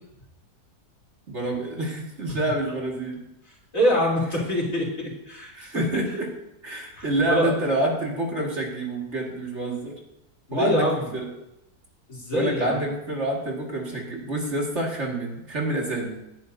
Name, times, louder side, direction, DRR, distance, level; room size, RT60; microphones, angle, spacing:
voice 1, 1.3-3.2 5.5-6.3 6.6-10.0 10.5-11.3 12.3-16.2, right 1 dB, 45° right, -1 dB, 2.4 m, -27 dB
voice 2, 3.7-5.8 6.9-7.5 10.5-11.0 12.1-12.8, equal, 55° left, -4 dB, 3.9 m, -25 dB
18.0 x 10.5 x 2.7 m, 0.85 s
omnidirectional pair, 1.7 m